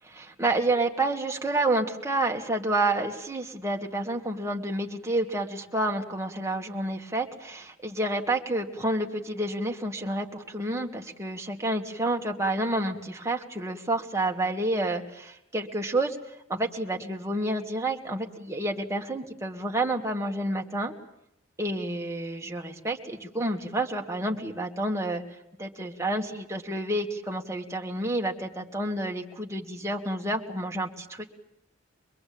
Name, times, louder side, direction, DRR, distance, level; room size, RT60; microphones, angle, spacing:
voice 1, 0.2-16.2 16.5-20.9 21.6-25.2 25.6-31.3, right 2 dB, 15° right, 0 dB, 2.0 m, -29 dB
24.0 x 22.5 x 8.7 m, 0.78 s
head